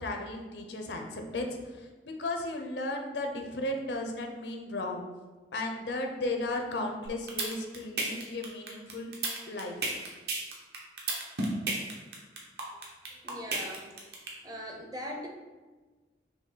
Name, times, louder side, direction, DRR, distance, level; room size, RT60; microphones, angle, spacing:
voice 1, 0.0-5.0 5.5-9.1 9.5-9.8, left 2 dB, 80° left, 3 dB, 0.7 m, -35 dB
sound 1, 7.1-14.3, right 3 dB, 70° right, 1.0 m, -32 dB
voice 2, 13.2-13.9 14.4-15.3, equal, 20° right, 1 dB, 0.5 m, -40 dB
5.9 x 2.3 x 3.8 m, 1.3 s
head